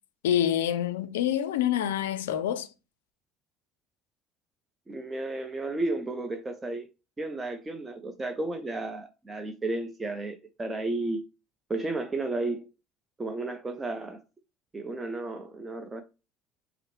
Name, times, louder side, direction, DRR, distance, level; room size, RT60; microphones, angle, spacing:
voice 1, 0.2-2.7, left 10 dB, 80° left, 0.4 m, -26 dB
voice 2, 4.9-6.9 7.2-11.3 11.7-12.7 13.2-14.2 14.7-16.0, right 2 dB, 20° right, 0.6 m, -33 dB
5.6 x 2.0 x 3.1 m
hypercardioid pair, 65°, 0 cm